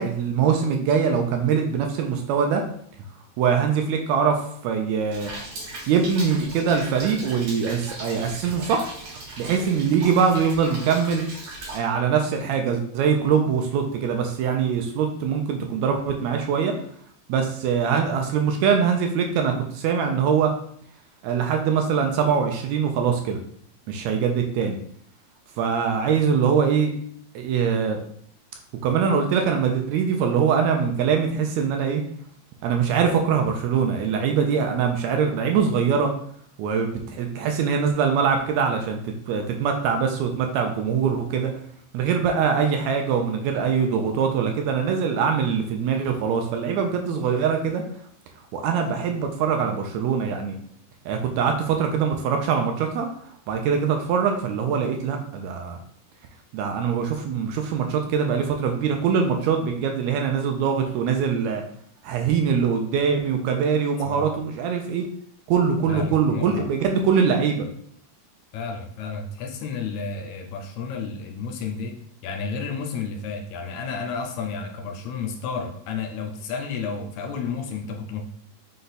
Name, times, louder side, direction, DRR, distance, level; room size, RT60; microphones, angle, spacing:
voice 1, 0.0-2.6 3.4-5.3 5.9-8.9 9.4-11.2 11.7-16.7 17.3-20.5 21.2-23.4 23.9-24.8 25.6-26.9 27.4-28.0 28.8-32.0 32.6-36.1 36.6-39.0 39.3-41.5 41.9-47.8 48.5-50.6 51.1-53.1 53.5-55.8 56.5-61.6 62.0-65.1 65.5-67.7, right 6 dB, 80° right, 4 dB, 1.7 m, -23 dB
Rain, 5.1-11.8, right 2 dB, 60° right, 2.2 m, -38 dB
voice 2, 65.9-66.7 68.5-72.0 72.2-78.3, left 5 dB, 80° left, 4 dB, 1.7 m, -31 dB
5.2 x 2.3 x 4.0 m, 0.63 s
omnidirectional pair, 3.5 m